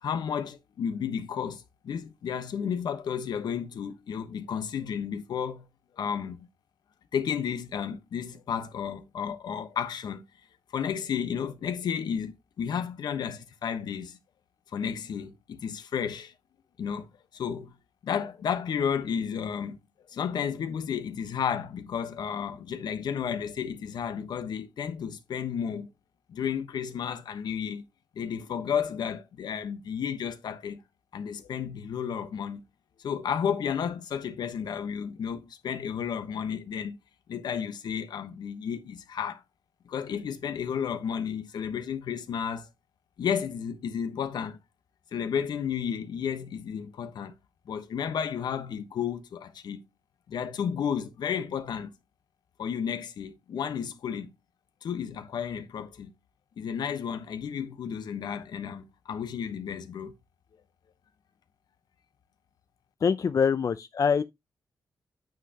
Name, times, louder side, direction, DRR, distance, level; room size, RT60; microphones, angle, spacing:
voice 1, 0.0-5.6 6.0-6.4 7.1-10.2 10.7-14.2 14.7-16.3 16.8-17.1 17.3-17.7 18.0-19.8 20.1-25.9 26.3-27.8 28.1-30.8 31.1-32.6 33.0-37.0 37.3-39.4 39.8-42.7 43.2-44.6 45.1-47.3 47.7-49.8 50.3-51.9 52.6-54.3 54.8-56.1 56.6-60.1, left 7 dB, 85° left, 1.1 m, -32 dB
voice 2, 63.0-64.2, left 6 dB, 50° left, 0.5 m, -24 dB
9.2 x 5.6 x 2.9 m
cardioid pair, 100°, 7 cm